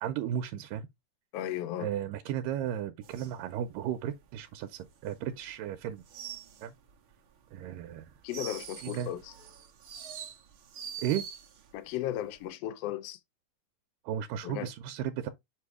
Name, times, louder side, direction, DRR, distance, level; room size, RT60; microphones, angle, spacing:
voice 1, 0.0-0.9 1.8-6.0 6.6-6.7 7.5-8.1 8.8-9.1 11.0-11.2 14.1-15.3, right 10 dB, 80° right, 2.2 m, -34 dB
voice 2, 1.3-1.9 8.2-9.3 11.7-13.2 14.4-14.7, left 12 dB, 80° left, 1.4 m, -35 dB
sound 1, 3.0-5.6 5.9-7.1 7.5-11.8 12.0-12.5, right 8 dB, 65° right, 1.3 m, -45 dB
7.4 x 2.7 x 4.8 m
omnidirectional pair, 3.9 m